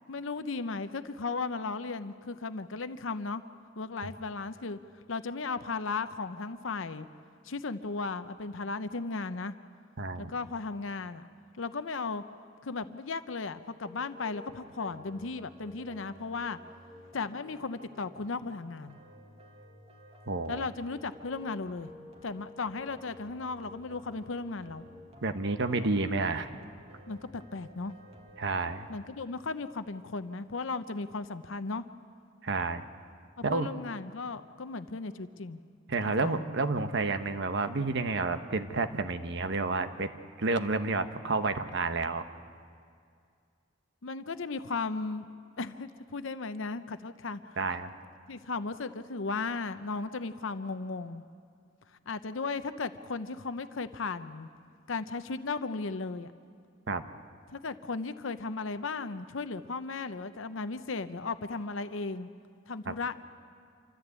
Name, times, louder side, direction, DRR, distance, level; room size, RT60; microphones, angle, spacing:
voice 1, 0.1-3.4 3.8-4.8 5.1-7.1 7.4-9.5 10.2-11.3 11.6-12.2 12.6-16.6 17.1-19.0 20.5-21.9 22.2-24.9 27.1-27.9 28.9-31.8 33.5-35.6 36.2-36.4 44.0-45.3 45.6-47.6 48.3-51.2 52.1-54.5 54.9-56.3 57.5-62.3 62.7-63.2, left 4 dB, 70° left, 11 dB, 0.8 m, -36 dB
voice 2, 10.0-10.3 20.3-20.6 25.2-26.5 28.4-28.9 32.4-32.8 33.4-33.7 35.9-40.1 40.4-42.2 47.6-47.9 56.9-57.0 62.9-63.0, right 3 dB, 65° right, 9 dB, 1.0 m, -30 dB
sound 1, 13.8-28.9, left 1 dB, 30° right, 1.9 m, -53 dB
27.0 x 14.0 x 8.2 m, 2.3 s
head